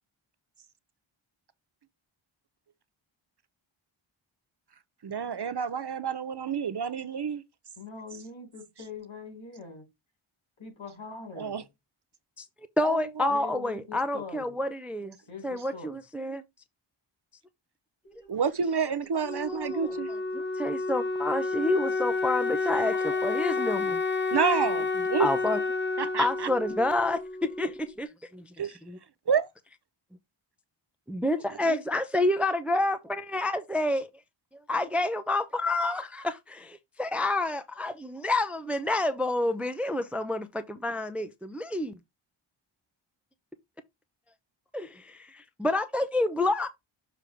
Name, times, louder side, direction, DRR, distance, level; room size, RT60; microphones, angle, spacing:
voice 1, 5.0-7.4 11.4-11.6 12.8-13.3 18.3-20.1 24.3-25.3 26.0-26.5 28.6-28.8 29.3-29.5 31.7-31.8, right 6 dB, 55° right, 0.7 m, -29 dB
voice 2, 7.8-9.8 10.6-11.6 13.3-14.6 15.3-16.0 22.9-23.0, left 5 dB, 65° left, 4.5 m, -43 dB
voice 3, 12.8-15.2 15.4-16.4 19.5-19.9 20.3-24.0 25.2-25.6 26.2-28.5 28.8-29.0 31.1-34.1 34.5-42.0 44.7-46.7, left 2 dB, 5° right, 0.6 m, -29 dB
Wind instrument woodwind instrument, 19.2-27.9, left 3 dB, 20° left, 1.2 m, -30 dB
6.9 x 3.0 x 4.9 m
wide cardioid pair, 70°, 50 cm